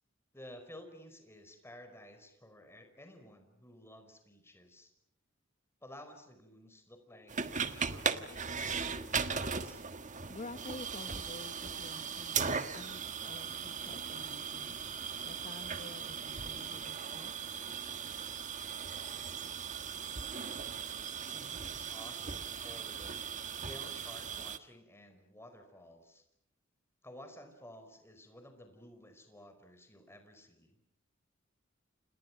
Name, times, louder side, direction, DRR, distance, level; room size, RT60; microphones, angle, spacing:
voice 1, 0.3-4.9 5.8-9.8 21.2-23.3 23.5-26.2 27.0-30.8, left 1 dB, 15° left, 7 dB, 5.0 m, -54 dB
sound 1, 7.3-24.6, right 6 dB, 40° right, 1.4 m, -38 dB
voice 2, 10.3-14.7 15.2-17.3 18.8-19.0 19.3-19.4, left 2 dB, 40° left, 9 dB, 1.1 m, -49 dB
30.0 x 29.0 x 6.0 m, 0.71 s
head